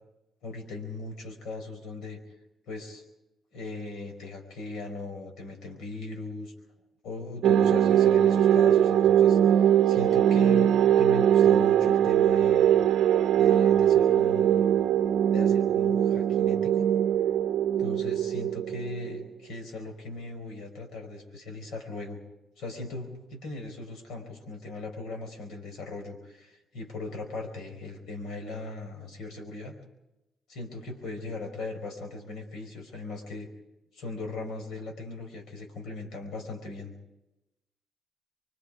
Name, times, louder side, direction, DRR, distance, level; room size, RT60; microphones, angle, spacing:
voice 1, 0.4-2.2 2.7-3.0 3.5-6.5 7.0-12.7 13.4-14.7 15.3-16.9 17.8-22.2 22.6-29.7 30.5-33.5 33.9-36.9, left 2 dB, 75° left, 3 dB, 4.7 m, -38 dB
sound 1, 7.4-19.2, right 10 dB, 65° right, 0.7 m, -21 dB
26.5 x 23.5 x 5.0 m, 0.95 s
cardioid pair, 170°, 0 cm